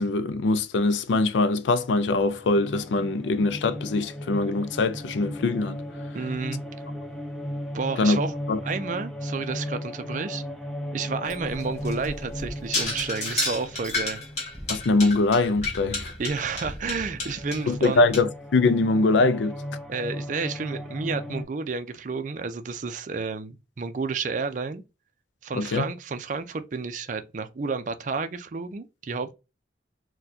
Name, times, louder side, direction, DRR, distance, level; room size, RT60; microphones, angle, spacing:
voice 1, 0.0-5.8 8.0-8.2 8.5-8.6 14.7-16.1 17.7-19.6 25.5-25.8, left 3 dB, 80° left, 0.4 m, -23 dB
sound 1, 2.2-21.4, equal, ahead, 0.6 m, -36 dB
voice 2, 6.1-6.6 7.7-8.3 8.6-10.4 10.9-14.2 16.2-18.0 19.9-24.8 25.4-29.3, right 4 dB, 45° right, 0.4 m, -31 dB
sound 2, 11.3-18.2, left 2 dB, 40° left, 1.4 m, -32 dB
4.2 x 2.2 x 2.7 m
head